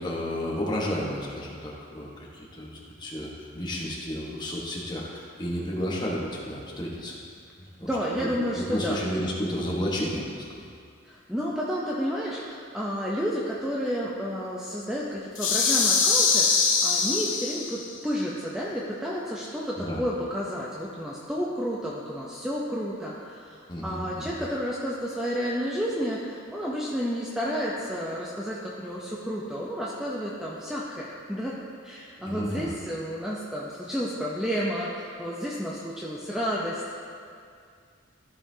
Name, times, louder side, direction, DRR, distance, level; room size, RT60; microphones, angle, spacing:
voice 1, 0.0-7.2 7.8-7.9 8.2-8.3 8.5-10.7 19.8-20.1 23.7-24.4 32.2-32.7, equal, 20° left, -4 dB, 1.1 m, -32 dB
voice 2, 7.8-9.0 11.0-31.5 31.8-37.0, equal, 5° right, -5 dB, 0.5 m, -31 dB
sound 1, 15.3-17.9, left 4 dB, 65° left, 1.0 m, -23 dB
14.0 x 5.6 x 2.7 m, 2.3 s
head